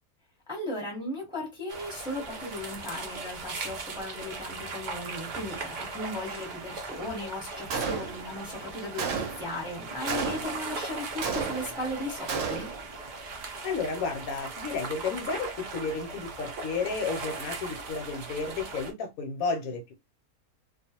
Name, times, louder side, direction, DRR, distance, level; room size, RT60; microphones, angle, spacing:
voice 1, 0.5-12.7, left 1 dB, 5° right, 0.8 m, -36 dB
sound 1, 1.7-18.9, right 3 dB, 80° right, 0.4 m, -39 dB
Gunshot gunfire, 7.7-8.4 9.0-9.6 10.1-10.7 11.2-11.9 12.3-12.9, right 5 dB, 65° right, 0.8 m, -32 dB
voice 2, 13.6-19.9, left 4 dB, 75° left, 1.0 m, -32 dB
2.4 x 2.2 x 2.8 m
omnidirectional pair, 1.6 m